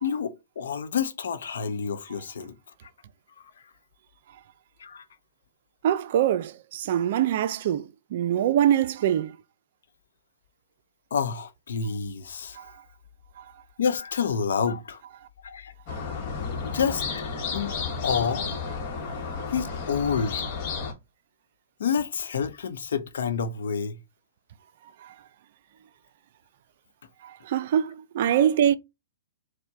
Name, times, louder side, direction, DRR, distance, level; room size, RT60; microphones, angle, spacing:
voice 1, 0.0-2.6 4.8-5.0 11.1-12.6 13.8-15.0 15.4-15.7 16.6-17.7 18.0-18.5 19.5-20.4 21.8-24.0, left 6 dB, 70° left, 0.6 m, -28 dB
voice 2, 5.8-9.4 12.6-12.7 13.4-13.5 15.9-16.0 25.0-25.1 27.2-28.8, right 10 dB, 55° right, 0.3 m, -24 dB
sound 1, 15.9-20.9, left 5 dB, 40° left, 1.1 m, -32 dB
4.4 x 2.1 x 4.4 m
hypercardioid pair, 120°, 0 cm